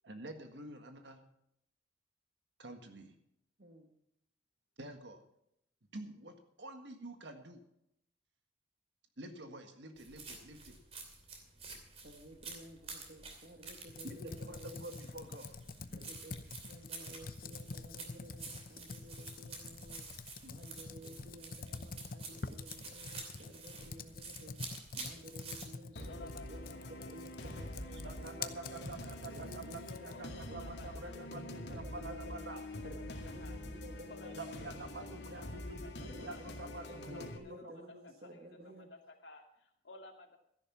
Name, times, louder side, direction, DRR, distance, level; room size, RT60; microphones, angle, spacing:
voice 1, 0.0-1.2 2.6-3.2 4.8-5.2 5.9-7.6 9.2-10.8 14.0-15.6 28.0-31.4 31.7-32.6 34.4-37.9, right 2 dB, 80° right, 6 dB, 1.7 m, -48 dB
sound 1, 10.0-25.7, right 4 dB, 35° right, 2.8 m, -50 dB
voice 2, 12.0-14.8 15.9-28.9 29.3-32.6 32.8-35.7 36.0-38.9, right 1 dB, 55° right, 3 dB, 1.6 m, -53 dB
Computer keyboard, 13.9-30.3, left 4 dB, 55° left, 0.8 m, -47 dB
voice 3, 25.9-27.1 27.4-29.4 29.9-32.3 32.6-32.7 33.1-33.8 34.1-34.3 35.2-40.4, left 3 dB, 90° left, 3 dB, 2.3 m, -56 dB
sound 2, 26.0-37.4, left 1 dB, 75° left, 2.1 m, -46 dB
13.5 x 11.0 x 5.6 m, 0.76 s
head